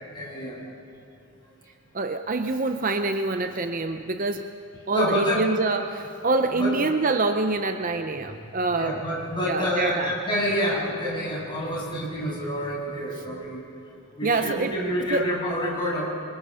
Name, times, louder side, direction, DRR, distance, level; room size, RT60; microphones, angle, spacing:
voice 1, 0.1-0.6 4.9-5.6 6.1-6.8 8.7-13.6 14.2-16.1, equal, 20° left, -5 dB, 7.8 m, -28 dB
voice 2, 1.9-4.5 4.9-9.0 9.4-10.1 14.2-14.8 15.1-15.3, right 3 dB, 35° right, 7 dB, 0.7 m, -25 dB
28.5 x 25.0 x 5.7 m, 2.8 s
head